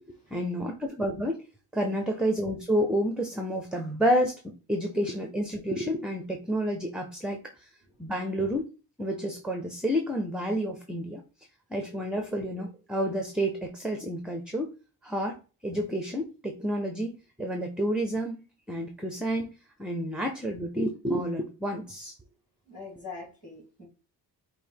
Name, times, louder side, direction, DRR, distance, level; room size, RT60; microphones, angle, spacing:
voice 1, 0.1-1.4 1.7-7.7 8.0-8.7 9.0-11.2 11.7-14.7 15.0-18.4 18.7-19.5 19.8-22.1, equal, ahead, 0.5 m, -30 dB
voice 2, 22.7-23.9, left 4 dB, 20° left, 2.8 m, -44 dB
5.2 x 2.1 x 4.6 m
cardioid pair, 140°, 40 cm